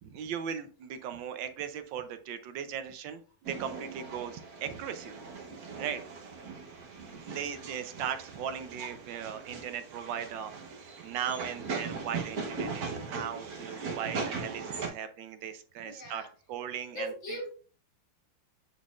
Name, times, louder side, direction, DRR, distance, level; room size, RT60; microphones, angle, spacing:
voice 1, 0.0-3.2 3.5-5.2 5.8-6.0 7.2-10.6 11.0-16.2 16.5-17.1, right 8 dB, 80° right, 10 dB, 1.4 m, -38 dB
sound 1, 3.4-14.9, right 4 dB, 55° right, 1.5 m, -39 dB
voice 2, 15.8-16.3 16.9-17.5, equal, 75° left, -1 dB, 2.5 m, -39 dB
9.3 x 4.1 x 2.4 m, 0.40 s
omnidirectional pair, 2.1 m